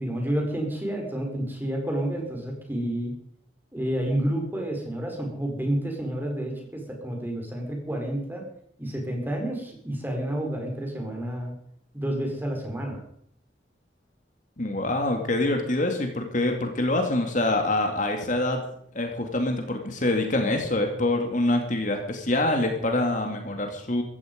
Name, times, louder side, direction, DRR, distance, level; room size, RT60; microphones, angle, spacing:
voice 1, 0.0-3.1 3.7-8.4 8.8-11.5 11.9-13.0, right 1 dB, 10° right, 1 dB, 4.2 m, -29 dB
voice 2, 14.6-18.6 18.9-24.0, left 2 dB, 45° left, 4 dB, 2.4 m, -25 dB
15.5 x 15.0 x 5.2 m, 0.67 s
head